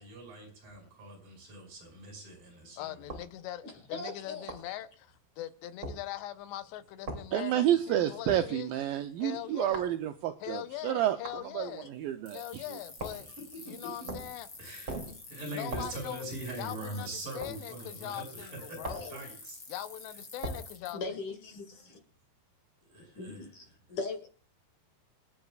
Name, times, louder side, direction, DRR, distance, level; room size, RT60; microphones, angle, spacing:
voice 1, 0.0-3.0 13.2-14.1 14.6-19.6 22.9-23.4, right 1 dB, 55° right, 7.6 m, -42 dB
voice 2, 2.8-4.9 5.4-8.7 9.2-9.9 10.4-11.9 12.3-13.3 13.7-14.5 15.1-15.2 15.5-16.2 16.6-17.1 17.3-19.0 19.7-21.0, left 13 dB, 85° left, 3.1 m, -41 dB
sound 1, 3.1-3.3 4.5-4.7 5.8-6.0 7.1-7.3 8.3-8.5 9.7-10.0 11.2-11.4 13.0-13.3 14.1-14.4 14.9-15.2 15.7-16.0 17.4-17.6 18.8-19.1 20.4-20.7, right 2 dB, 30° right, 2.9 m, -39 dB
voice 3, 3.6-4.5 7.4-7.5 18.9-19.3 20.9-22.0 23.1-24.3, left 3 dB, 50° left, 3.3 m, -40 dB
voice 4, 7.3-11.2 11.5-12.6, right 12 dB, 85° right, 2.0 m, -30 dB
sound 2, 12.3-20.9, left 4 dB, 30° left, 4.0 m, -48 dB
28.0 x 9.4 x 2.4 m
omnidirectional pair, 4.9 m